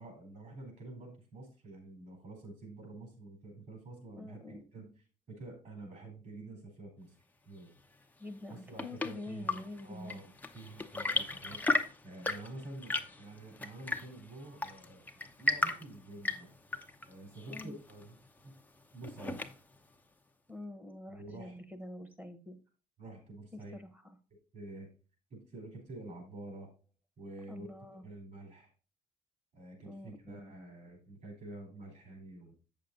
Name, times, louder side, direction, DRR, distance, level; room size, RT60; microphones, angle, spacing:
voice 1, 0.0-4.9 5.3-7.1 7.4-7.7 8.5-15.1 15.4-16.5 17.1-18.2 18.4-18.6 18.9-19.4 21.1-21.6 23.0-23.8 24.5-24.9 25.3-26.7 27.2-27.7 28.0-28.7 29.5-32.5, right 2 dB, 50° right, 3 dB, 4.3 m, -48 dB
voice 2, 4.2-4.6 8.2-10.2 17.5-17.7 20.5-22.6 23.7-24.0 27.5-28.0 29.9-30.5, left 2 dB, 10° right, 10 dB, 1.3 m, -46 dB
Chirp tweet / Engine / Tap, 8.3-19.9, left 2 dB, 10° left, 0.7 m, -37 dB
8.0 x 6.7 x 3.9 m, 0.35 s
cardioid pair, 110°, 17 cm